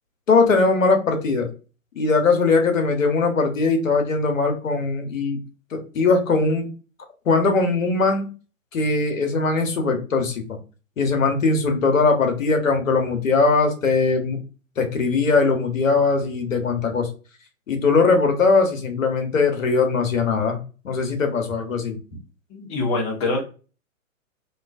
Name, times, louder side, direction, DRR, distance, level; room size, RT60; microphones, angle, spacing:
voice 1, 0.3-1.5 2.0-5.4 5.7-6.7 7.3-8.3 8.7-10.4 11.0-14.4 14.8-17.1 17.7-20.6 20.8-22.0, left 4 dB, 70° left, 4 dB, 0.8 m, -20 dB
voice 2, 22.5-23.4, left 2 dB, 15° left, -2 dB, 0.5 m, -24 dB
2.3 x 2.3 x 2.3 m, 0.35 s
figure-of-eight pair, 115°, 41 cm